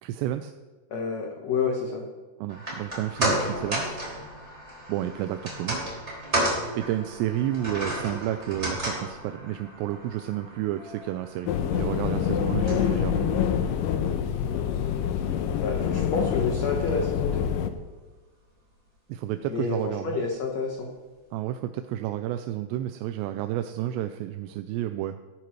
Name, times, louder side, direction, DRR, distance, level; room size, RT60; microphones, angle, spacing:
voice 1, 0.0-0.5 2.4-4.0 4.9-5.8 6.8-13.5 19.1-20.2 21.3-25.2, right 13 dB, 85° right, 8 dB, 2.7 m, -31 dB
voice 2, 0.9-2.1 15.6-17.5 19.5-20.9, left 4 dB, 70° left, 1 dB, 1.6 m, -29 dB
sound 1, 2.5-14.9 15.2-15.3, right 1 dB, 15° right, 3.5 m, -33 dB
sound 2, 11.5-17.7, left 8 dB, 85° left, 2.0 m, -26 dB
17.5 x 13.5 x 3.1 m, 1.3 s
omnidirectional pair, 4.9 m